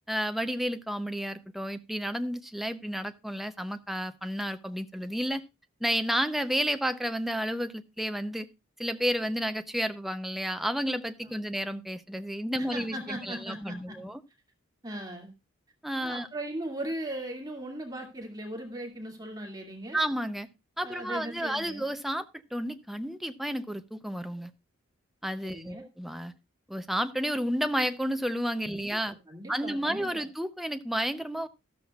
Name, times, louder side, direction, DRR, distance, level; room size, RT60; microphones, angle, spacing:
voice 1, 0.1-5.4 5.8-8.5 8.8-14.2 15.8-16.3 19.9-20.5 20.8-22.2 22.5-24.5 25.2-26.3 26.7-29.1 29.5-31.5, equal, ahead, 0.6 m, -31 dB
voice 2, 11.2-11.5 12.6-14.0 14.8-15.3 16.0-20.0 20.8-21.9 25.4-25.9 28.7-30.3, right 1 dB, 20° right, 2.3 m, -39 dB
13.5 x 13.0 x 2.4 m
head